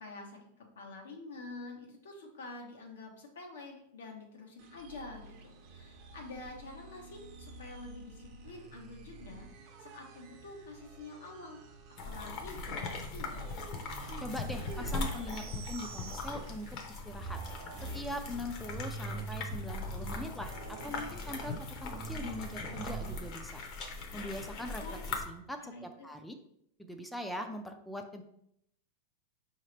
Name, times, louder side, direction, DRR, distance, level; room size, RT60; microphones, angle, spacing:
voice 1, 0.0-9.5 9.8-11.6 12.0-13.4 24.8-24.9 25.6-25.9, left 2 dB, 90° left, 1 dB, 1.0 m, -47 dB
sound 1, 4.6-16.9 17.1-23.2, right 3 dB, 45° right, 0.7 m, -46 dB
sound 2, 12.0-25.3, left 3 dB, 45° left, 0.7 m, -40 dB
voice 2, 14.2-17.4 17.9-20.5 20.8-23.6 24.1-26.4 26.8-28.2, left 1 dB, 5° left, 5 dB, 0.3 m, -42 dB
4.8 x 2.8 x 3.2 m, 0.73 s
supercardioid pair, 145°, 0 cm